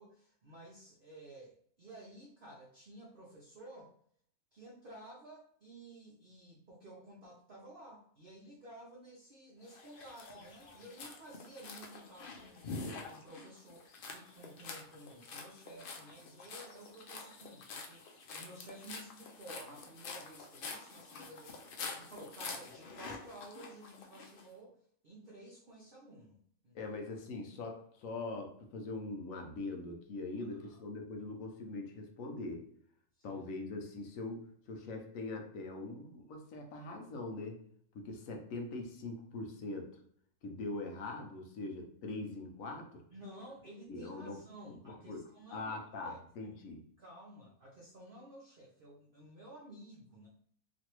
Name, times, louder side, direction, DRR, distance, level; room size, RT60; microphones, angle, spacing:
voice 1, 0.0-3.9 4.5-26.4 26.6-26.9 30.6-30.8 33.2-33.4 43.1-46.2 47.0-50.3, right 1 dB, 55° right, -4 dB, 0.6 m, -53 dB
sound 1, 9.7-24.4, left 4 dB, 90° left, 0.4 m, -47 dB
voice 2, 26.7-32.7 33.2-37.6 37.9-39.9 40.4-43.0 43.9-44.4 44.7-46.8, left 2 dB, 65° left, 2 dB, 1.0 m, -42 dB
3.1 x 2.6 x 2.9 m, 0.63 s
omnidirectional pair, 1.6 m